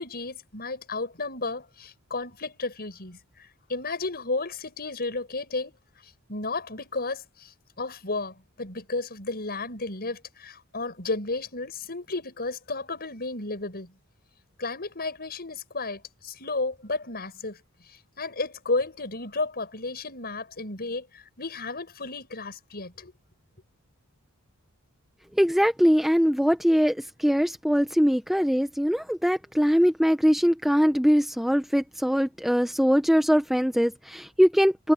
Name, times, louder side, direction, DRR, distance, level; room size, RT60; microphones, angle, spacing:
voice 1, 0.0-5.8 6.3-13.9 14.6-17.6 17.9-23.1, left 3 dB, 45° left, 6.5 m, -33 dB
voice 2, 25.4-34.9, equal, ahead, 1.0 m, -22 dB
head